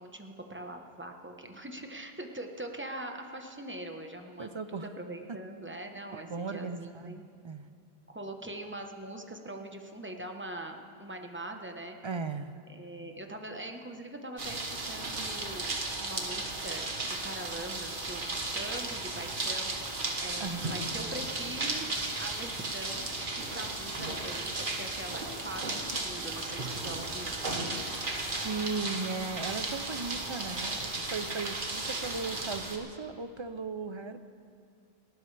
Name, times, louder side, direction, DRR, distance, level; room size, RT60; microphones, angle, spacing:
voice 1, 0.0-7.2 8.1-12.0 12.7-18.3 18.5-19.9 20.2-21.9 22.2-27.4, right 1 dB, 10° right, 3 dB, 1.0 m, -42 dB
voice 2, 4.4-4.9 5.3-5.4 6.1-7.2 7.4-7.7 12.0-12.6 20.4-20.6 28.2-34.2, right 4 dB, 35° right, 10 dB, 0.5 m, -37 dB
sound 1, 14.4-32.8, right 2 dB, 55° right, 1.5 m, -35 dB
29.0 x 12.5 x 3.4 m, 2.3 s
omnidirectional pair, 1.0 m